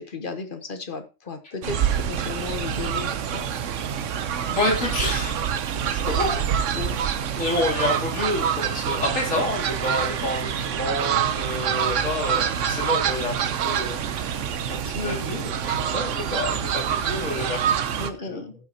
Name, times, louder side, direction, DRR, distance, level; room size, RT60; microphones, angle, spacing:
voice 1, 0.0-3.5 6.7-6.9 14.9-15.2 18.0-18.5, left 4 dB, 40° left, 7 dB, 1.1 m, -34 dB
Fowl, 1.6-18.1, right 8 dB, 70° right, 1.0 m, -26 dB
voice 2, 4.4-5.5 5.9-6.4 7.3-18.5, left 1 dB, 70° left, -3 dB, 3.2 m, -29 dB
16.0 x 5.9 x 2.7 m, 0.29 s
omnidirectional pair, 1.4 m